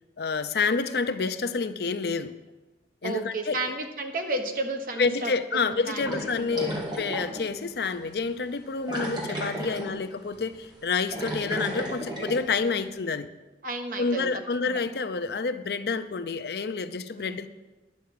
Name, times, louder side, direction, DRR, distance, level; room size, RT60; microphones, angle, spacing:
voice 1, 0.2-2.4 3.0-3.6 5.0-13.3 14.0-17.5, left 4 dB, 60° left, 11 dB, 0.5 m, -28 dB
voice 2, 3.0-5.3 5.7-6.2 9.6-10.0 13.6-14.3 14.6-14.8 17.2-17.4, right 2 dB, 50° right, 4 dB, 1.2 m, -32 dB
sound 1, 6.0-7.5 7.9-8.0 8.9-10.0 10.3-10.5 10.9-12.4, right 1 dB, 25° right, 2.0 m, -33 dB
10.5 x 5.7 x 8.4 m, 1.1 s
head